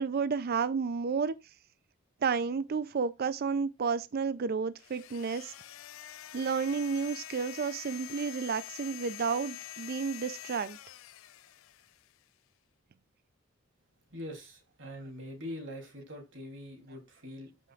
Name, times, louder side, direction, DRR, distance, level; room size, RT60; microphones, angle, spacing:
voice 1, 0.0-1.3 2.2-5.5 6.3-10.8, right 5 dB, 50° right, 0.4 m, -31 dB
sound 1, 4.8-12.2, left 13 dB, 90° left, 0.4 m, -46 dB
voice 2, 14.1-17.5, equal, 65° right, 3.1 m, -43 dB
13.5 x 5.6 x 2.4 m
head